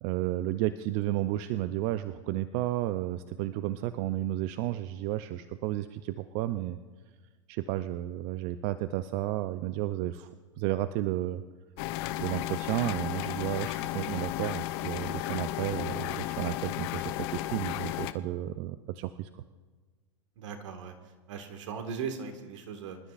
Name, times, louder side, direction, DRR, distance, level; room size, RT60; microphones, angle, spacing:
voice 1, 0.0-6.8 7.5-10.3 10.6-11.4 12.2-19.4, right 14 dB, 45° right, 12 dB, 0.5 m, -32 dB
sound 1, 11.8-18.1, left 15 dB, 50° left, 0.7 m, -34 dB
voice 2, 20.4-20.9 21.3-23.0, right 6 dB, 70° right, 6 dB, 1.8 m, -38 dB
25.5 x 12.5 x 2.5 m, 1.4 s
hypercardioid pair, 105°, 16 cm